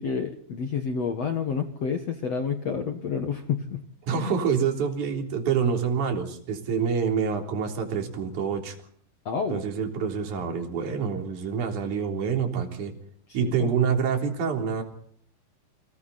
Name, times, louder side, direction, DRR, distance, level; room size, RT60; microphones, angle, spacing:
voice 1, 0.0-3.8 4.1-4.3 9.2-9.6 13.4-13.7, left 6 dB, 60° left, 6 dB, 1.7 m, -29 dB
voice 2, 4.0-8.8 9.5-12.9 13.3-14.8, right 6 dB, 45° right, 3 dB, 4.6 m, -27 dB
30.0 x 23.5 x 4.2 m, 0.62 s
omnidirectional pair, 5.3 m